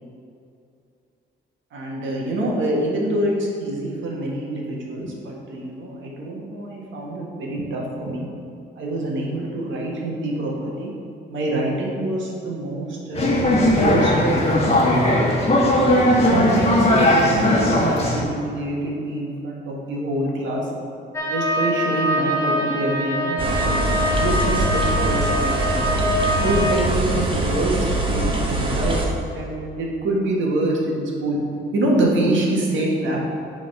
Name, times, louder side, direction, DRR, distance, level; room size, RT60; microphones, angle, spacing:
voice 1, 1.7-8.3 8.7-10.9 11.3-13.3 13.6-15.4 16.0-20.7 21.2-23.8 24.1-25.9 26.4-31.4 31.7-33.2, right 1 dB, 75° right, -2 dB, 1.6 m, -25 dB
sound 1, 13.1-18.2, left 1 dB, 30° left, 1.5 m, -18 dB
sound 2, 21.1-26.7, equal, 15° left, 1.0 m, -24 dB
sound 3, 23.4-29.1, right 1 dB, 25° right, 1.1 m, -23 dB
7.4 x 4.1 x 5.5 m, 2.5 s
cardioid pair, 90°, 20 cm